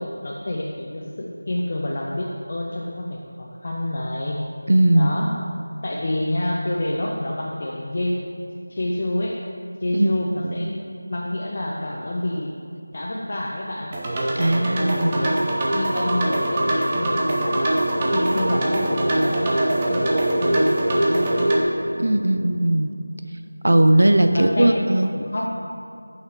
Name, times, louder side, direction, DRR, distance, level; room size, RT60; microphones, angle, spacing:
voice 1, 0.0-4.4 4.9-5.4 5.8-8.2 8.7-9.4 9.8-10.8 11.1-12.6 12.9-13.9 14.4-15.4 15.7-21.5 24.3-25.5, left 1 dB, 35° left, -2 dB, 0.5 m, -28 dB
voice 2, 4.7-5.1 10.0-10.1 10.4-10.7 14.4-15.3 22.0-22.9 23.6-25.1, right 1 dB, 65° right, 7 dB, 0.4 m, -18 dB
sound 1, 13.9-21.6, right 1 dB, 15° right, 0.6 m, -22 dB
6.0 x 5.7 x 4.5 m, 2.4 s
figure-of-eight pair, 175°, 0 cm